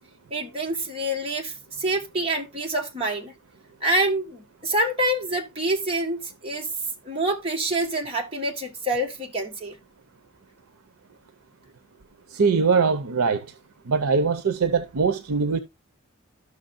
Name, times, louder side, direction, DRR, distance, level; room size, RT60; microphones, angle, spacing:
voice 1, 0.3-3.3 3.8-6.7 7.1-9.8, right 1 dB, 25° right, 1.7 m, -26 dB
voice 2, 12.3-13.4 13.9-15.6, right 5 dB, 85° right, 0.7 m, -22 dB
13.0 x 6.0 x 2.5 m
head